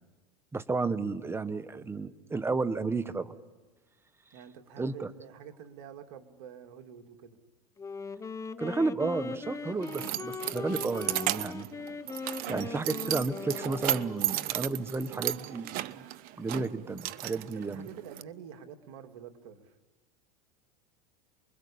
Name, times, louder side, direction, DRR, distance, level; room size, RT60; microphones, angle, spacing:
voice 1, 0.5-3.3 4.8-5.1 8.6-11.7 12.5-16.0 16.4-17.9, right 3 dB, 10° right, 13 dB, 1.3 m, -32 dB
voice 2, 4.3-7.4 17.2-19.7, right 8 dB, 65° right, 5 dB, 2.5 m, -48 dB
Wind instrument woodwind instrument, 7.8-14.5, left 4 dB, 15° left, 0.9 m, -40 dB
Keys jangling, 9.1-18.2, right 15 dB, 50° right, 1.0 m, -35 dB
29.0 x 22.0 x 8.7 m, 1.2 s
supercardioid pair, 115°, 19 cm